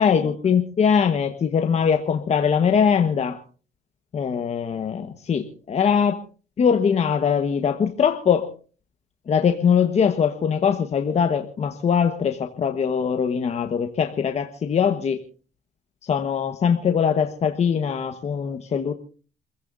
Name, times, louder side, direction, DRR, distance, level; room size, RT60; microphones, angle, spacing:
voice 1, 0.0-3.4 4.1-6.2 6.6-8.5 9.3-15.2 16.0-18.9, left 7 dB, 40° left, 5 dB, 1.3 m, -21 dB
28.5 x 16.0 x 2.7 m, 0.38 s
cardioid pair, 110°, 17 cm